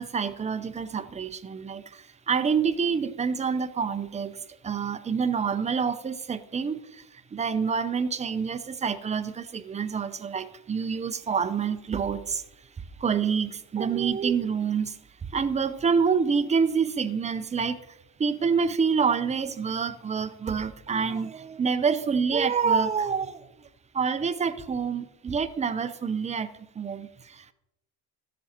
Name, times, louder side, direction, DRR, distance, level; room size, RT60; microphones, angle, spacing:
voice 1, 0.0-7.0 7.3-12.4 13.0-15.0 15.3-17.8 18.2-23.5 23.9-26.5 26.8-27.5, right 6 dB, 20° right, 11 dB, 0.5 m, -27 dB
13.0 x 7.5 x 4.3 m, 0.89 s
cardioid pair, 140°, 38 cm